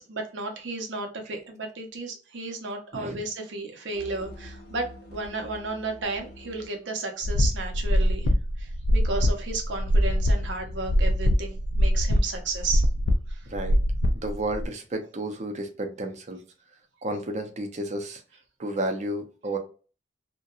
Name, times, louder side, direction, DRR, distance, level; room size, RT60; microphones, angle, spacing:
voice 1, 0.0-8.3 8.6-12.9 13.3-13.5, right 3 dB, 75° right, 3 dB, 0.7 m, -33 dB
sound 1, 3.9-6.7, left 1 dB, 55° left, 1.0 m, -45 dB
sound 2, 7.2-14.6, equal, 70° left, 0.4 m, -23 dB
voice 2, 13.5-13.8 14.1-16.4 17.0-18.2 18.6-19.6, right 1 dB, 40° right, 5 dB, 0.5 m, -32 dB
2.7 x 2.2 x 2.3 m, 0.36 s
head